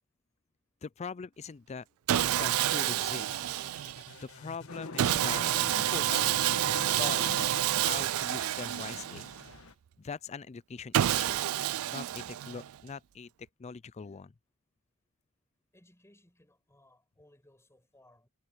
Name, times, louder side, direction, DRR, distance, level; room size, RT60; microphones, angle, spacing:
voice 1, 0.8-3.4 4.3-5.4 5.7-7.2 7.7-9.2 10.0-11.4 11.9-14.3, left 5 dB, 30° left, 0.4 m, -42 dB
sound 1, 2.1-9.0, left 3 dB, 90° left, 4.0 m, -52 dB
Sawing, 2.1-4.1 5.0-9.5 10.9-12.8, right 12 dB, 75° right, 0.3 m, -29 dB
sound 2, 4.7-9.7, left 3 dB, 70° left, 1.5 m, -43 dB
voice 2, 15.7-18.3, left 1 dB, 15° left, 7.8 m, -62 dB
head